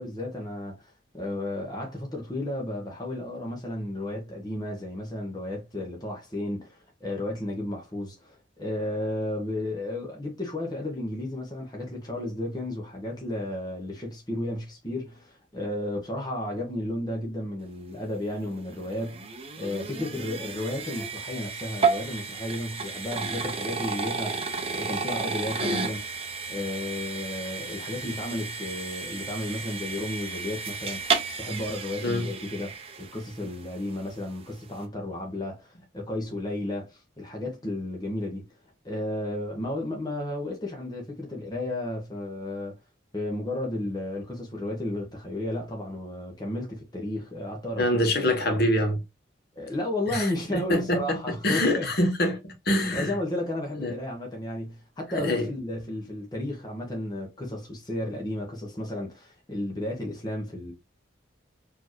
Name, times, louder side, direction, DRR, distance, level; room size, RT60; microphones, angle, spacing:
voice 1, 0.0-19.2 19.6-26.0 26.5-38.4 38.8-42.8 43.1-47.9 49.5-51.9 52.9-60.7, left 1 dB, 20° left, 1.0 m, -33 dB
sound 1, 18.3-33.5, right 4 dB, 30° right, 0.6 m, -32 dB
voice 2, 47.8-49.0 50.1-51.2 51.4-52.4 52.6-53.1 53.7-53.9 55.1-55.5, left 1 dB, 50° left, 1.1 m, -25 dB
4.3 x 2.8 x 3.0 m
head